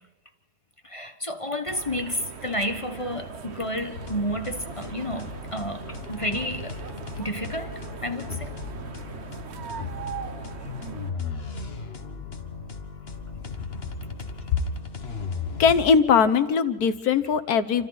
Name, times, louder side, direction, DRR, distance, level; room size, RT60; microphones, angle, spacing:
voice 1, 0.8-6.7 7.2-7.7 8.0-8.5, equal, 25° left, 7 dB, 1.2 m, -31 dB
sound 1, 1.7-11.1, right 6 dB, 50° right, 1.2 m, -40 dB
sound 2, 3.9-15.9, left 4 dB, 45° left, 1.7 m, -36 dB
voice 2, 15.6-17.9, left 6 dB, 90° left, 10 dB, 1.6 m, -20 dB
28.5 x 25.5 x 4.1 m, 1.2 s
omnidirectional pair, 1.6 m